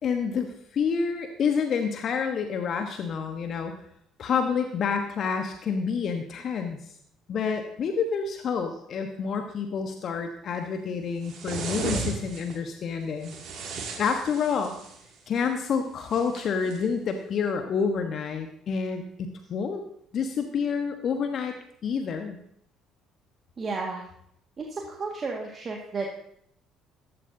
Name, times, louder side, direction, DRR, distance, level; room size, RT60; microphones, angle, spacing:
voice 1, 0.0-3.7 4.2-6.8 7.3-13.4 14.0-14.7 15.3-19.8 20.1-22.4, left 6 dB, 50° left, 6 dB, 1.2 m, -28 dB
sound 1, 11.2-12.5 13.2-15.0 16.1-16.8, right 4 dB, 55° right, 2.4 m, -35 dB
voice 2, 23.6-24.0 24.6-26.1, right 4 dB, 35° right, 0 dB, 1.9 m, -33 dB
15.0 x 12.5 x 2.8 m, 0.70 s
figure-of-eight pair, 50°, 0 cm